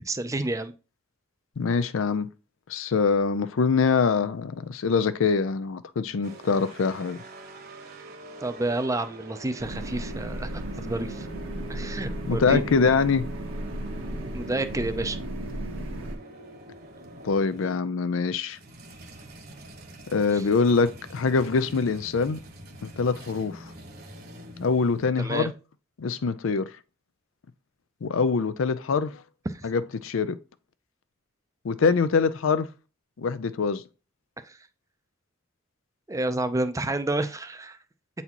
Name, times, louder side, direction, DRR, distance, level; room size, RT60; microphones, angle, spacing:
voice 1, 0.1-0.7 8.4-11.3 11.7-12.6 14.3-15.2 20.3-20.4 25.2-25.5 29.5-29.7 34.4-34.6 36.1-37.8, right 2 dB, 15° right, 0.5 m, -29 dB
voice 2, 1.6-2.3 2.7-7.2 12.3-13.3 17.2-18.6 20.1-22.4 22.8-23.6 24.6-25.5 26.0-26.7 28.0-29.2 29.6-30.4 31.6-32.7 33.2-33.8, left 5 dB, 75° left, 0.5 m, -24 dB
sound 1, 6.2-17.8 18.5-25.1, right 1 dB, 50° right, 1.2 m, -45 dB
sound 2, 9.6-16.2, right 1 dB, 90° right, 1.5 m, -35 dB
8.1 x 4.1 x 2.9 m
head